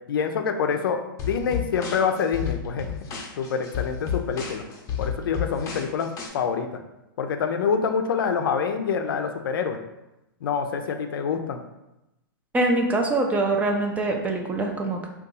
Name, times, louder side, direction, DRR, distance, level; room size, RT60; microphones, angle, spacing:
voice 1, 0.1-2.9 3.4-4.6 5.0-6.8 7.2-9.8 10.4-11.6, left 6 dB, 75° left, 6 dB, 0.4 m, -26 dB
sound 1, 1.2-6.3, left 7 dB, 25° left, 0.6 m, -31 dB
voice 2, 12.5-15.1, right 2 dB, 10° right, 2 dB, 0.4 m, -24 dB
2.7 x 2.3 x 3.8 m, 0.92 s
hypercardioid pair, 125°, 12 cm